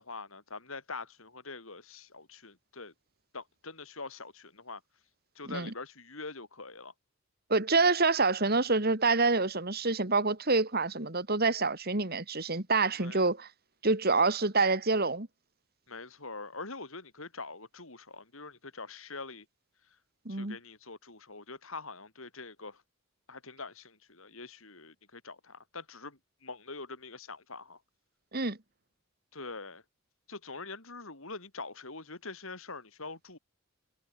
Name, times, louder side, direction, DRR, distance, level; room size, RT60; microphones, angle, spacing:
voice 1, 0.0-2.9 3.3-4.8 5.3-6.9 13.0-13.3 15.9-19.5 20.3-22.8 23.3-27.8 29.3-29.8 30.3-33.4, left 3 dB, 70° left, 4.7 m, -44 dB
voice 2, 7.5-13.5 13.8-15.3 20.3-20.6 28.3-28.6, right 3 dB, 45° right, 2.3 m, -27 dB
head